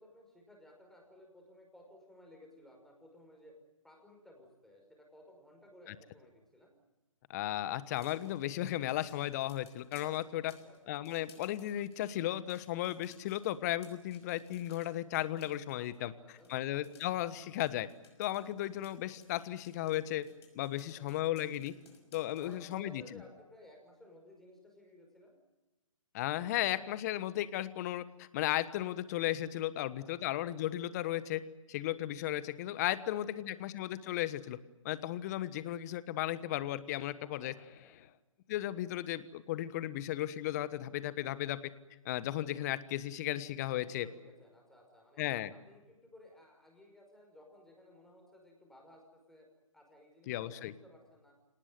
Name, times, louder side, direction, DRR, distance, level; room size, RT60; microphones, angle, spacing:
voice 1, 0.0-3.6 3.8-6.8 10.5-11.0 15.7-17.2 20.8-21.3 22.4-25.4 29.8-30.3 33.0-33.5 37.2-38.0 43.8-45.2 45.5-49.5 49.7-51.3, left 1 dB, ahead, 1 dB, 5.5 m, -58 dB
voice 2, 7.3-10.5 10.9-16.1 16.5-17.9 18.2-20.3 20.5-21.7 22.1-23.0 26.1-31.4 31.7-34.6 34.8-37.5 38.5-41.7 42.0-44.1 45.2-45.5 50.3-50.7, left 14 dB, 30° left, 15 dB, 1.3 m, -35 dB
sound 1, 7.7-16.0 16.4-22.8, left 6 dB, 50° left, 5.9 m, -62 dB
26.5 x 19.0 x 9.3 m, 1.1 s
figure-of-eight pair, 140°, 17 cm